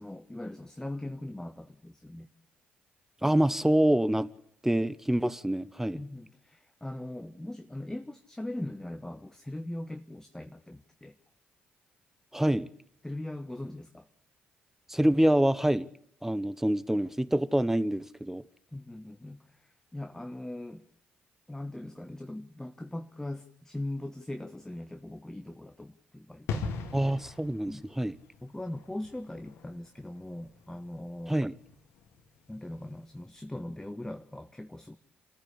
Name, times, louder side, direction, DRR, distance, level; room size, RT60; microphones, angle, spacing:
voice 1, 0.0-2.3 5.9-11.1 13.0-14.1 18.7-20.9 21.5-26.7 27.7-27.8 28.4-31.4 32.5-35.0, left 1 dB, 10° left, 1.4 m, -40 dB
voice 2, 3.2-4.3 4.6-6.0 12.3-12.7 14.9-15.9 16.2-18.4 26.9-28.2 31.3-31.5, right 1 dB, 5° right, 1.2 m, -26 dB
sound 1, 26.5-33.0 33.2-33.4, left 4 dB, 70° left, 2.2 m, -41 dB
27.0 x 14.5 x 8.5 m
hypercardioid pair, 40°, 5 cm